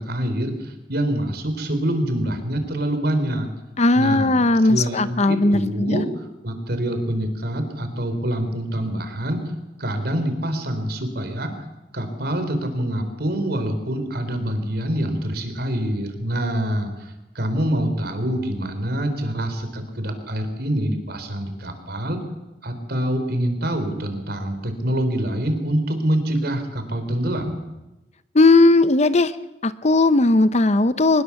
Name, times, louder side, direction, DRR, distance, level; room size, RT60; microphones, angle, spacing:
voice 1, 0.0-3.5 4.0-9.5 9.8-11.5 11.9-22.2 22.6-27.6, right 1 dB, 60° right, 8 dB, 3.8 m, -25 dB
voice 2, 3.8-6.0 28.3-29.3 29.6-31.2, left 2 dB, 40° left, 14 dB, 0.8 m, -17 dB
23.0 x 20.5 x 7.2 m, 0.98 s
head